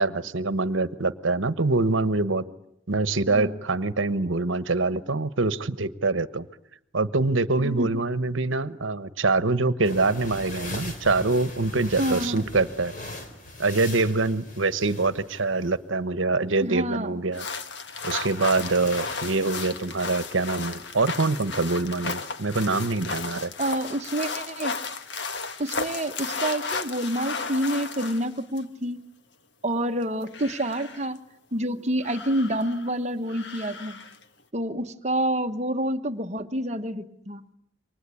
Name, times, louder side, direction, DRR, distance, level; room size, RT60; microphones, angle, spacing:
voice 1, 0.0-2.4 2.9-6.5 6.9-12.9 13.6-17.4 18.0-23.5, right 3 dB, 75° right, 14 dB, 1.2 m, -25 dB
sound 1, 9.8-15.8 17.9-20.9, left 2 dB, 40° left, 4.0 m, -40 dB
voice 2, 12.0-12.5 16.6-17.2 23.6-24.7 25.6-29.0 29.6-31.2 31.5-34.0 34.5-37.4, right 1 dB, 35° right, 8 dB, 1.2 m, -28 dB
sound 2, 17.3-28.6 30.0-31.1 32.0-32.9 33.3-34.2, left 4 dB, 60° left, 1.5 m, -34 dB
28.5 x 24.5 x 8.4 m, 0.75 s
head